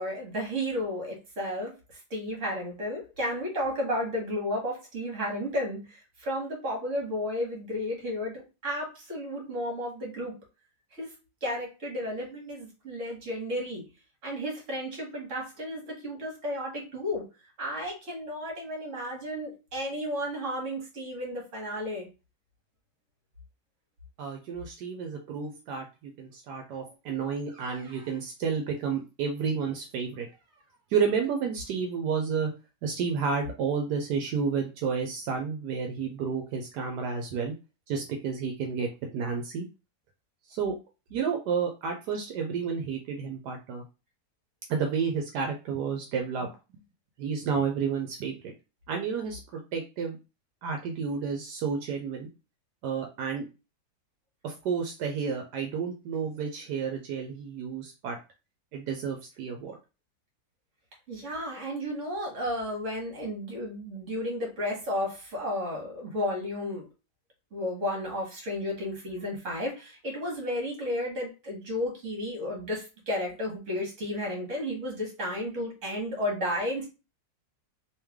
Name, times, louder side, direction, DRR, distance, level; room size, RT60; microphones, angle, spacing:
voice 1, 0.0-10.3 10.9-11.1 11.4-13.9 14.2-17.2 17.6-22.1 26.8-26.9 61.1-66.9 67.5-76.9, left 1 dB, 50° right, 0 dB, 1.7 m, -33 dB
voice 2, 24.2-30.3 30.9-32.5 32.8-37.5 37.9-39.6 40.5-40.7 41.1-43.8 44.7-46.5 47.2-48.5 48.9-49.4 49.7-50.2 50.6-52.3 52.8-53.4 54.4-58.2 58.7-59.8, right 6 dB, 80° right, 3 dB, 1.2 m, -31 dB
3.2 x 2.9 x 3.5 m, 0.29 s
omnidirectional pair, 1.7 m